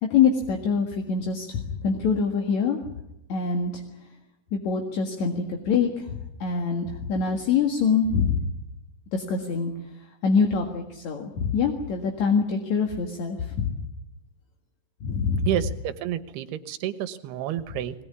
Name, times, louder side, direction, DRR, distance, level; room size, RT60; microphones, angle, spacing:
voice 1, 0.0-2.8 3.3-3.8 4.5-8.5 9.1-9.7 10.2-13.7 15.0-15.5, left 5 dB, 55° left, 3 dB, 2.6 m, -25 dB
voice 2, 15.2-17.9, right 11 dB, 80° right, 12 dB, 3.2 m, -30 dB
22.0 x 20.0 x 9.7 m, 0.87 s
omnidirectional pair, 4.8 m